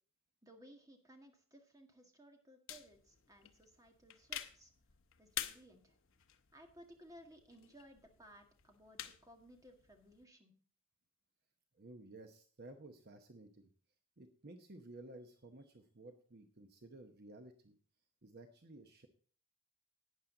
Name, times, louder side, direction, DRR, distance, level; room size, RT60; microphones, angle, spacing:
voice 1, 0.4-4.7 5.2-6.0 6.5-10.5, right 1 dB, 15° right, 3 dB, 1.8 m, -60 dB
sound 1, 2.7-10.2, left 11 dB, 60° left, 0.9 m, -50 dB
voice 2, 11.8-13.7 14.2-17.8 18.2-19.1, right 2 dB, 45° right, 6 dB, 0.9 m, -55 dB
12.0 x 9.4 x 3.9 m, 0.43 s
head